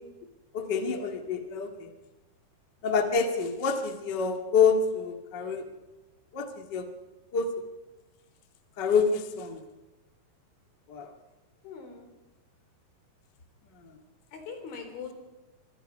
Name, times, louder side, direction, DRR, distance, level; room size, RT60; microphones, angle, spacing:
voice 1, 0.5-1.9 2.8-5.6 6.3-6.9 7.3-7.5 8.8-9.6 10.9-11.1, left 5 dB, 40° left, 5 dB, 1.6 m, -27 dB
voice 2, 11.6-12.1 14.3-15.1, left 5 dB, 85° left, 4 dB, 6.6 m, -41 dB
25.0 x 24.5 x 5.6 m, 1.1 s
omnidirectional pair, 5.3 m